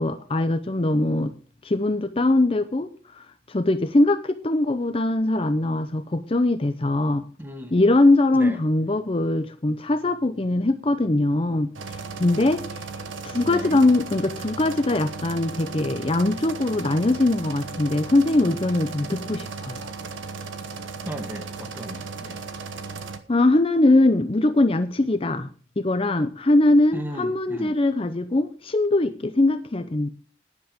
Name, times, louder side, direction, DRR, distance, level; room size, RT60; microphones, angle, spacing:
voice 1, 0.0-1.3 1.6-7.3 7.7-12.6 13.2-19.9 23.3-25.5 25.8-30.1, left 2 dB, 30° left, 0.6 m, -21 dB
voice 2, 7.4-7.9 8.3-8.6 13.4-13.8 21.0-22.4 26.9-27.8, equal, 10° right, 1.3 m, -36 dB
sound 1, 11.8-23.2, right 4 dB, 80° right, 1.2 m, -36 dB
15.0 x 10.5 x 3.6 m
head